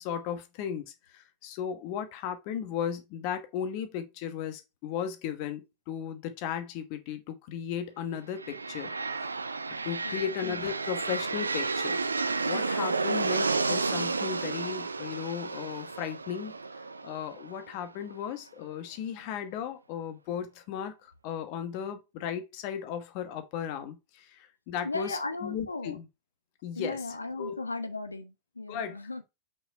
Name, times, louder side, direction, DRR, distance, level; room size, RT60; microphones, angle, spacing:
voice 1, 0.0-8.9 9.8-12.0 12.5-16.5 17.0-26.1 26.6-27.0 27.4-27.6 28.7-29.0, left 8 dB, 45° left, 1.1 m, -36 dB
sound 1, 8.3-18.1, right 4 dB, 80° right, 0.4 m, -32 dB
voice 2, 24.8-26.0 26.7-29.2, left 3 dB, 80° left, 0.8 m, -36 dB
5.6 x 4.7 x 4.1 m
figure-of-eight pair, 90°, 0 cm